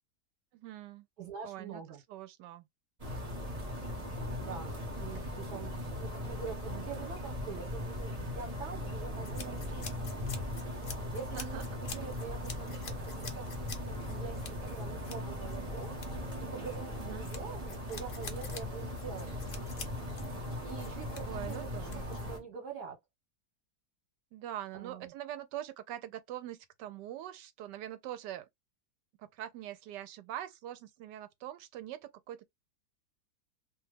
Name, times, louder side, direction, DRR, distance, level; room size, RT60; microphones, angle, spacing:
voice 1, 0.5-1.1 1.4-1.8 2.1-2.6 11.3-11.7 17.0-17.3 21.2-22.0 24.3-28.5 29.2-32.5, right 12 dB, 90° right, 1.3 m, -43 dB
voice 2, 1.2-2.0 4.4-10.1 11.1-16.0 16.4-19.4 20.6-23.0 24.7-25.1, right 6 dB, 70° right, 1.5 m, -45 dB
sound 1, 3.0-22.4, left 1 dB, 25° right, 0.9 m, -39 dB
sound 2, 9.2-22.4, left 5 dB, 60° left, 0.5 m, -48 dB
2.8 x 2.3 x 3.3 m
omnidirectional pair, 1.8 m